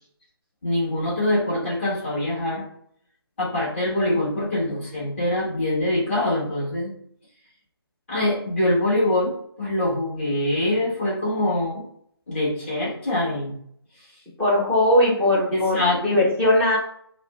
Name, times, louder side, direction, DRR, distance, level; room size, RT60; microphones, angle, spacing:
voice 1, 0.6-2.6 3.4-6.9 8.1-11.8 12.3-13.6 15.5-16.0, left 1 dB, 25° left, -7 dB, 1.3 m, -24 dB
voice 2, 14.4-16.8, left 1 dB, 5° left, -8 dB, 0.5 m, -19 dB
4.8 x 2.1 x 2.3 m, 0.67 s
figure-of-eight pair, 160°, 14 cm